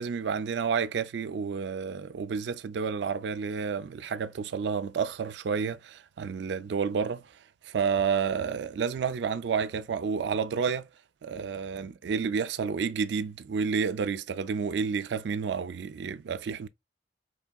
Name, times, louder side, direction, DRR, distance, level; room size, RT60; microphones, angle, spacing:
voice 1, 0.0-7.3 7.6-10.9 11.2-16.7, right 6 dB, 80° right, 0.4 m, -30 dB
4.5 x 3.2 x 2.3 m
head